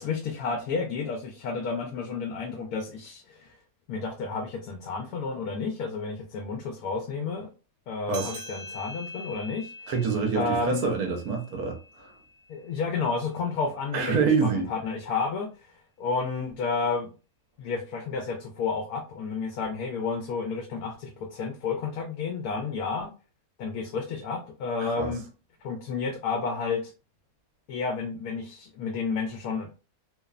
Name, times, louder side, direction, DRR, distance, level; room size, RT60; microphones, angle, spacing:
voice 1, 0.0-3.6 3.9-7.5 7.9-9.7 10.3-10.9 12.5-17.1 17.6-23.1 23.6-25.2 25.6-26.9 27.7-29.8, left 4 dB, 80° left, 1.0 m, -31 dB
sound 1, 8.1-13.0, equal, 55° right, 0.9 m, -44 dB
voice 2, 9.9-12.1 13.9-14.7 24.8-25.1, right 5 dB, 90° right, 1.2 m, -26 dB
2.9 x 2.0 x 2.3 m
omnidirectional pair, 1.6 m